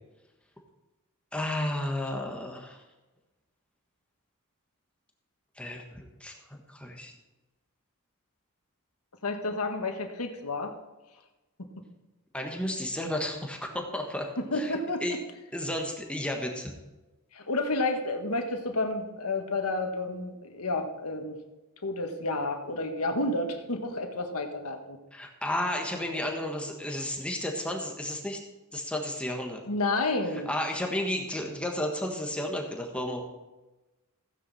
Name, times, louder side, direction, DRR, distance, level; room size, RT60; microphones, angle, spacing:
voice 1, 1.3-2.8 5.6-7.1 12.3-14.7 15.0-15.2 15.5-16.7 25.1-28.4 28.7-29.6 30.3-33.2, left 1 dB, 5° left, 1 dB, 1.3 m, -33 dB
voice 2, 9.2-10.7 14.4-15.2 17.3-21.4 21.8-25.0 29.6-30.5, left 2 dB, 80° left, 5 dB, 1.6 m, -30 dB
15.5 x 9.6 x 4.2 m, 1.1 s
head